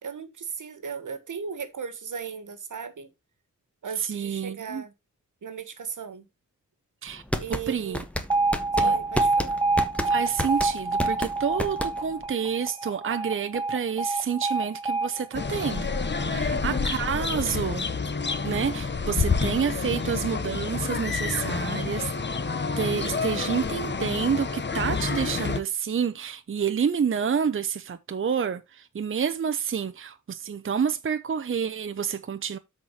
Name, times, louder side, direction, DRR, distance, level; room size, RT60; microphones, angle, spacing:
voice 1, 0.0-3.1 3.8-4.9 5.4-6.3 7.4-8.0 8.7-9.6 16.2-16.9, right 6 dB, 75° right, 1.5 m, -37 dB
voice 2, 4.0-4.8 7.0-7.2 7.5-8.0 8.8-9.0 10.0-15.9 16.1-17.9 18.4-22.1 22.8-32.6, right 7 dB, 40° right, 0.6 m, -29 dB
sound 1, 7.1-12.3, left 1 dB, 5° left, 1.2 m, -30 dB
Alarm, 8.3-16.3, right 3 dB, 15° right, 2.0 m, -27 dB
sound 2, 15.3-25.6, left 4 dB, 35° left, 0.9 m, -28 dB
13.0 x 4.4 x 2.9 m
wide cardioid pair, 105°, 31 cm